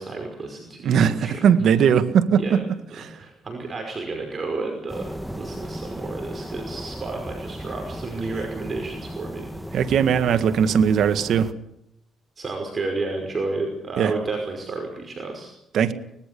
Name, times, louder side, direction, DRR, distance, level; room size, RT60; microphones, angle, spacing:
voice 1, 0.0-1.9 2.4-2.6 3.0-9.5 12.4-15.5, right 3 dB, 40° right, 3 dB, 5.4 m, -31 dB
voice 2, 0.8-3.1 9.7-11.5 14.0-14.1 15.7-15.9, right 7 dB, 70° right, 10 dB, 1.8 m, -19 dB
sound 1, 4.9-11.5, equal, 5° right, 1.6 m, -36 dB
24.0 x 20.5 x 6.9 m, 0.82 s
cardioid pair, 90°, 0 cm